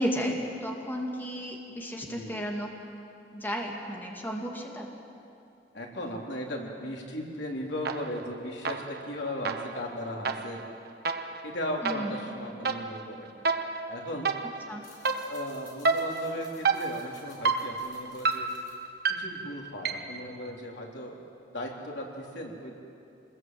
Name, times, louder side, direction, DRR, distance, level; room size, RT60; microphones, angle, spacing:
voice 1, 0.0-2.7 3.3-4.9 11.8-12.2 14.7-14.8, equal, 10° left, -1 dB, 2.5 m, -33 dB
voice 2, 2.0-2.4 5.7-10.6 11.4-13.3 13.9-14.3 15.2-18.5 19.2-21.2 21.5-22.7, left 1 dB, 80° left, -1 dB, 3.7 m, -37 dB
sound 1, 7.8-8.3 8.6-20.3, right 4 dB, 60° right, 1.1 m, -31 dB
sound 2, 14.7-19.8, left 3 dB, 55° left, 6.9 m, -57 dB
27.0 x 21.0 x 7.8 m, 2.6 s
head